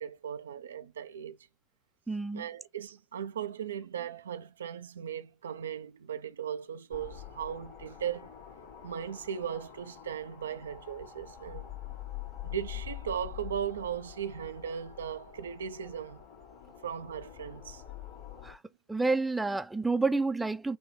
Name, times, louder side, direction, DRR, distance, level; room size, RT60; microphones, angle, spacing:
voice 1, 0.0-1.4 2.3-8.3 8.8-11.7 12.4-16.2 16.8-17.8, right 8 dB, 80° right, 0.5 m, -37 dB
voice 2, 2.1-2.4 18.4-18.6 18.9-20.8, right 3 dB, 10° right, 0.5 m, -29 dB
sound 1, 6.9-18.5, left 11 dB, 70° left, 2.8 m, -46 dB
6.0 x 2.3 x 3.1 m
hypercardioid pair, 80°, 0 cm